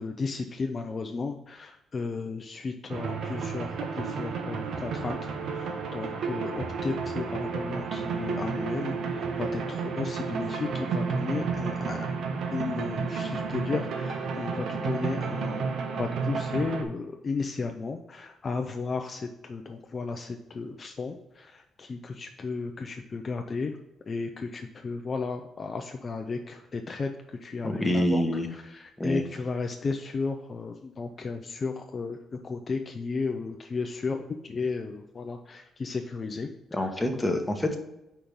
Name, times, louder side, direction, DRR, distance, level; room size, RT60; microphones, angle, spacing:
voice 1, 0.0-12.0 12.5-15.6 15.9-23.7 24.1-28.2 28.7-32.2 32.4-36.5 36.8-36.9, left 4 dB, 40° left, 4 dB, 0.5 m, -34 dB
sound 1, 2.9-16.8, right 5 dB, 70° right, 0.9 m, -31 dB
voice 2, 27.6-28.5 29.0-29.2 36.7-37.8, equal, 10° left, 4 dB, 1.1 m, -26 dB
5.0 x 4.4 x 5.3 m, 0.94 s
cardioid pair, 90°, 0 cm